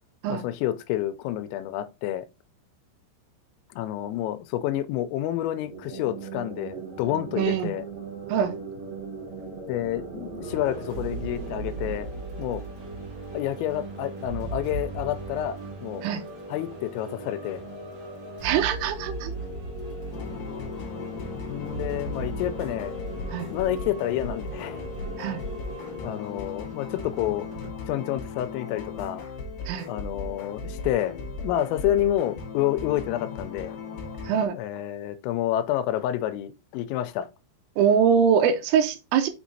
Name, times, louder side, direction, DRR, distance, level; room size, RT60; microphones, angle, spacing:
voice 1, 0.3-2.3 3.7-7.8 9.7-12.1 12.4-12.6 13.3-16.1 16.5-17.6 21.5-22.9 23.5-24.8 26.0-27.5 27.9-29.2 29.9-33.8 34.5-37.3, left 12 dB, 85° left, 3.2 m, -29 dB
sound 1, 5.5-13.0, right 5 dB, 65° right, 2.7 m, -39 dB
voice 2, 7.4-7.7 8.3-8.6 16.0-16.2 18.4-19.3 23.3-23.5 25.2-25.4 29.7-29.9 34.3-34.6 37.8-39.3, right 7 dB, 90° right, 3.3 m, -23 dB
sound 2, 10.4-27.7, right 1 dB, 40° right, 1.9 m, -37 dB
sound 3, 20.1-34.5, left 3 dB, 60° left, 2.7 m, -37 dB
6.3 x 6.2 x 2.7 m
omnidirectional pair, 5.9 m